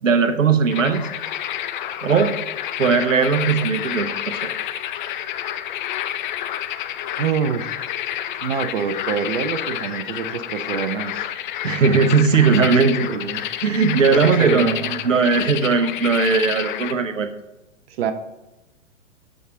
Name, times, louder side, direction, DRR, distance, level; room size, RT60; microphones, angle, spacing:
voice 1, 0.0-1.1 2.0-2.3 2.8-4.5 11.6-13.1 13.6-17.3, right 5 dB, 85° right, 9 dB, 1.0 m, -18 dB
sound 1, 0.7-16.9, left 11 dB, 40° left, 0.6 m, -29 dB
voice 2, 7.2-7.7 8.4-11.3 12.8-13.5 14.1-15.1 17.9-18.1, right 7 dB, 50° right, 8 dB, 0.9 m, -26 dB
13.5 x 5.0 x 3.8 m, 0.99 s
hypercardioid pair, 120°, 38 cm